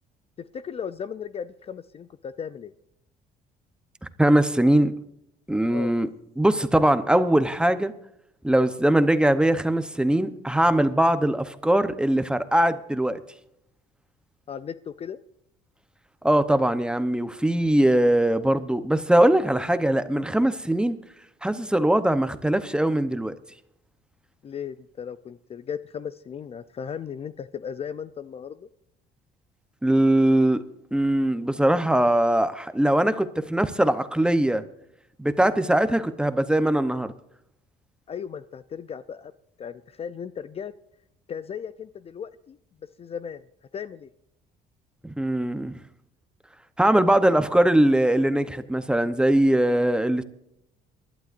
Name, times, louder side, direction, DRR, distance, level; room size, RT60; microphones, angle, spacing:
voice 1, 0.4-2.7 5.7-5.9 14.5-15.2 24.4-28.7 38.1-39.3 39.6-40.7 41.3-42.6 43.0-43.4 43.7-44.1, left 7 dB, 35° left, 13 dB, 0.5 m, -36 dB
voice 2, 4.2-4.9 5.5-6.1 6.4-7.9 8.4-13.2 16.2-21.0 21.4-23.3 29.8-30.6 30.9-34.6 35.2-37.1 45.0-45.8 46.8-50.2, right 1 dB, 5° right, 11 dB, 0.8 m, -21 dB
24.0 x 12.0 x 2.6 m, 0.79 s
cardioid pair, 110°, 17 cm